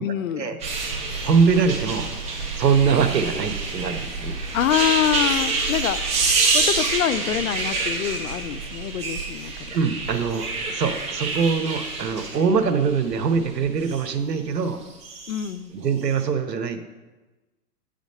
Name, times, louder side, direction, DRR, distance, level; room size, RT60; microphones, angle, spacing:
voice 1, 0.0-0.5 4.5-6.0 6.5-9.8 15.3-15.7, left 10 dB, 60° left, 14 dB, 0.6 m, -25 dB
sound 1, 0.6-14.0 14.9-15.5 16.0-16.1, right 3 dB, 15° right, 1.3 m, -27 dB
voice 2, 1.2-2.1 2.6-4.4 9.7-14.8 15.7-16.8, right 5 dB, 90° right, 8 dB, 1.1 m, -22 dB
9.3 x 5.1 x 5.4 m, 1.2 s
hypercardioid pair, 140°, 48 cm